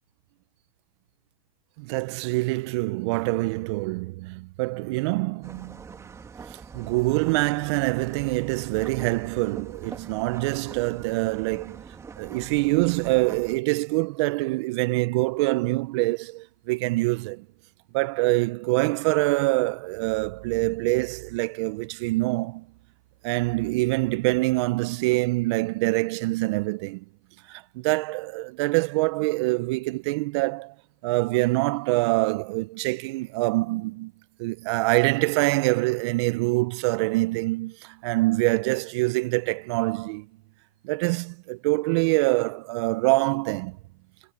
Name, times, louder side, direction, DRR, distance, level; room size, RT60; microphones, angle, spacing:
voice 1, 1.8-5.8 6.7-11.8 12.2-17.4 17.9-22.7 23.2-27.0 27.5-30.7 31.0-34.1 34.4-40.2 40.8-43.8, right 23 dB, 50° right, 1.5 m, -25 dB
sound 1, 5.4-13.6, right 5 dB, 15° right, 2.6 m, -43 dB
hypercardioid pair, 115°, 18 cm